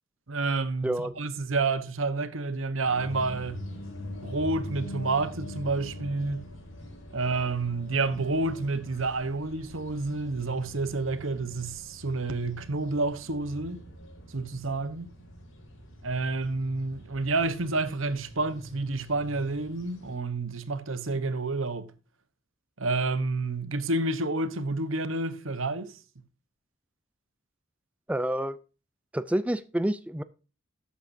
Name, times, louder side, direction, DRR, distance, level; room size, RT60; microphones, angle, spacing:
voice 1, 0.3-3.6 4.2-6.4 7.1-13.8 14.3-15.1 16.0-21.9 22.8-25.9, right 3 dB, 75° right, 1.1 m, -29 dB
voice 2, 0.8-1.2 28.1-28.6 29.1-30.2, right 1 dB, 5° right, 0.4 m, -28 dB
sound 1, 2.8-20.2, left 1 dB, 85° left, 4.7 m, -44 dB
12.5 x 8.3 x 2.7 m
head